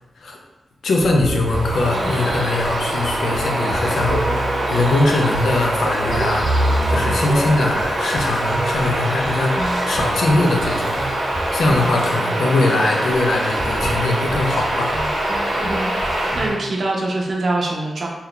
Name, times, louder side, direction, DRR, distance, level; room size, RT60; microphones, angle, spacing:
voice 1, 0.8-4.3 4.7-6.5 6.9-11.0 11.5-15.0, left 2 dB, 85° left, 1 dB, 0.5 m, -21 dB
sound 1, 1.0-16.5, right 1 dB, 35° left, 0.6 m, -29 dB
Bird vocalization bird call bird song, 1.3-16.6, right 1 dB, 80° right, 0.8 m, -23 dB
voice 2, 15.6-18.1, right 2 dB, 50° right, -1 dB, 0.6 m, -24 dB
2.8 x 2.3 x 3.6 m, 1.0 s
wide cardioid pair, 130°, 0 cm